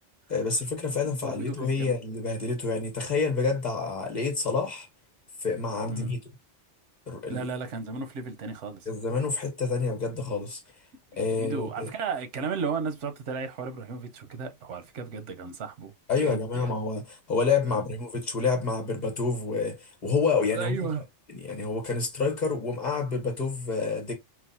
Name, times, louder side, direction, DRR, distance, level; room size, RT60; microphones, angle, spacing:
voice 1, 0.3-4.9 5.4-6.2 7.1-7.4 8.9-10.6 11.2-11.9 16.1-20.8 21.4-24.1, left 4 dB, 40° left, 0.9 m, -28 dB
voice 2, 1.2-1.9 5.9-6.1 7.3-8.9 11.1-15.9 16.2-16.7 20.5-21.0, right 5 dB, 90° right, 1.1 m, -34 dB
4.5 x 2.0 x 2.6 m
omnidirectional pair, 1.2 m